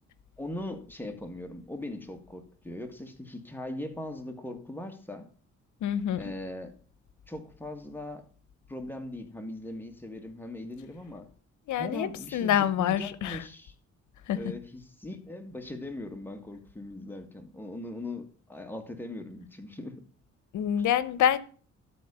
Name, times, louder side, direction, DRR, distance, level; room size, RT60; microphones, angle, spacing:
voice 1, 0.4-5.3 6.2-6.7 7.3-8.2 8.7-11.3 11.8-13.7 14.3-20.1 20.8-20.9, left 1 dB, 5° left, 2.0 m, -40 dB
voice 2, 5.8-6.3 11.7-13.4 14.3-14.4 20.5-21.4, left 10 dB, 75° left, 0.9 m, -26 dB
12.5 x 4.3 x 6.9 m
cardioid pair, 90°, 30 cm